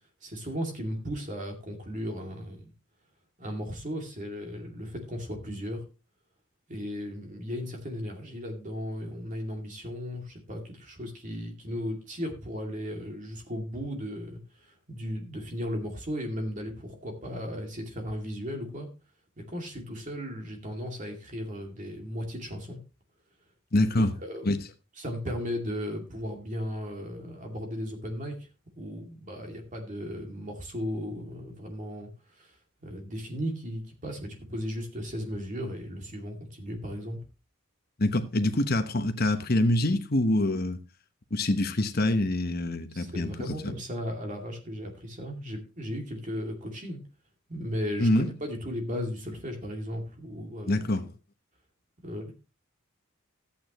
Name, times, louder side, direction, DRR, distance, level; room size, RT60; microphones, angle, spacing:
voice 1, 0.2-2.7 3.4-5.8 6.7-18.9 19.4-22.8 24.2-24.6 25.0-28.3 28.8-32.5 32.8-37.2 42.9-47.0 47.5-50.9 52.0-52.3, equal, 35° right, 2.5 m, -36 dB
voice 2, 23.7-24.1 24.4-24.6 38.0-40.8 41.3-43.6 48.0-48.3 50.7-51.1, left 1 dB, 45° left, 1.0 m, -25 dB
13.5 x 8.6 x 3.0 m
head